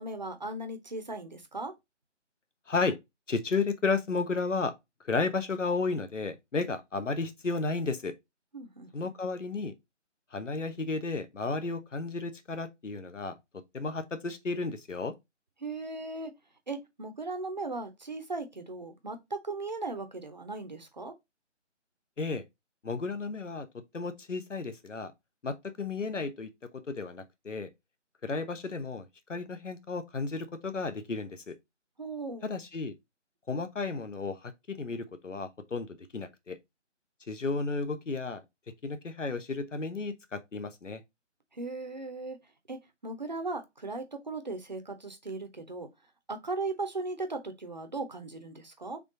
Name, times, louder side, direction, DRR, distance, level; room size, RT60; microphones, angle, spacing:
voice 1, 0.0-1.7 8.5-9.1 15.6-16.3 16.7-21.2 32.0-32.5 41.5-42.4 42.7-45.9 46.3-49.0, right 3 dB, 35° right, 0.6 m, -37 dB
voice 2, 2.7-3.0 3.3-4.7 5.0-8.1 8.9-9.7 10.3-13.3 13.7-15.1 22.2-22.4 22.8-25.1 25.4-27.7 28.2-31.5 32.4-33.0 33.5-36.6 37.3-38.4 38.8-41.0, left 4 dB, 75° left, 1.0 m, -33 dB
3.8 x 3.5 x 3.7 m
figure-of-eight pair, 155°, 37 cm